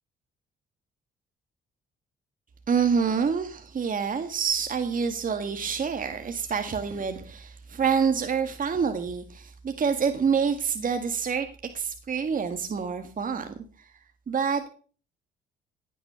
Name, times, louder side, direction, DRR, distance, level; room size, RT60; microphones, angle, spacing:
voice 1, 2.7-13.9 14.3-14.7, right 6 dB, 45° right, 7 dB, 1.8 m, -27 dB
16.5 x 9.4 x 6.9 m, 0.42 s
cardioid pair, 90°, 20 cm